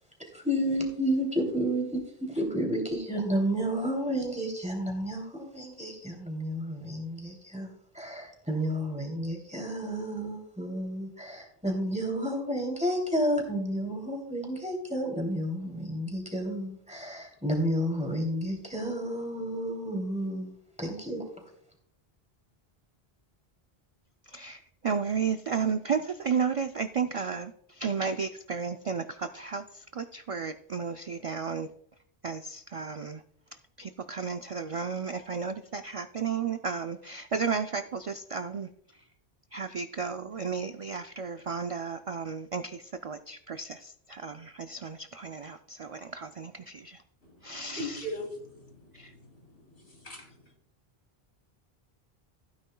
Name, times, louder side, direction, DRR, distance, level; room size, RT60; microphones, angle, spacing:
voice 1, 0.2-20.5 20.8-21.2, equal, 5° right, 2.9 m, -31 dB
voice 2, 24.3-31.7 32.2-33.2 33.8-38.7 39.5-47.0 47.4-48.0 48.9-49.1, right 6 dB, 50° right, 0.4 m, -33 dB
voice 3, 47.2-50.5, equal, 85° left, 3.5 m, -41 dB
15.5 x 9.3 x 2.3 m
omnidirectional pair, 1.0 m